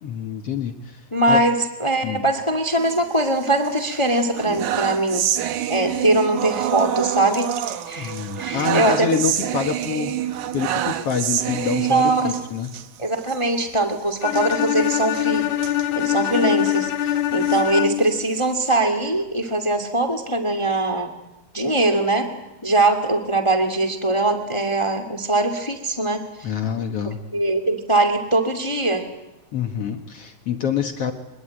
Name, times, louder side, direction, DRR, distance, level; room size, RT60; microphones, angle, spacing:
voice 1, 0.0-1.4 2.0-2.2 8.0-12.7 26.4-27.2 29.5-31.1, left 7 dB, 60° left, 5 dB, 1.7 m, -26 dB
voice 2, 1.1-5.2 5.7-8.1 8.4-9.1 11.9-12.2 13.0-15.5 15.9-21.1 21.5-22.3 22.6-26.2 27.3-29.0, right 2 dB, 15° left, 5 dB, 1.0 m, -21 dB
sound 1, 2.7-3.7 4.1-12.9 13.2-13.4 13.6-13.8 14.3-16.8 17.3-18.7, right 11 dB, 65° right, 2.1 m, -27 dB
Bowed string instrument, 14.2-18.2, left 12 dB, 90° left, 3.1 m, -23 dB
24.5 x 21.5 x 9.0 m, 0.95 s
omnidirectional pair, 4.4 m